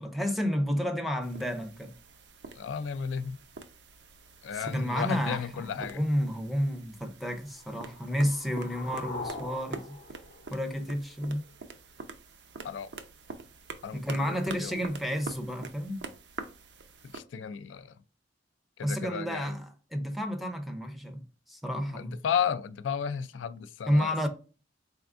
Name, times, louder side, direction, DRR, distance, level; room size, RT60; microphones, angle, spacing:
voice 1, 0.0-1.9 4.5-5.5 5.8-10.0 10.5-11.5 13.9-16.0 18.8-19.6 19.9-22.2 23.9-24.3, equal, ahead, 0.5 m, -31 dB
sound 1, 1.2-17.2, right 4 dB, 65° right, 0.5 m, -46 dB
voice 2, 2.6-3.4 4.4-6.1 12.6-12.9 13.8-14.8 17.0-18.0 18.8-19.6 21.9-24.1, left 7 dB, 85° left, 0.4 m, -34 dB
sound 2, 7.5-11.5, left 3 dB, 55° left, 0.7 m, -44 dB
4.3 x 3.4 x 2.4 m
head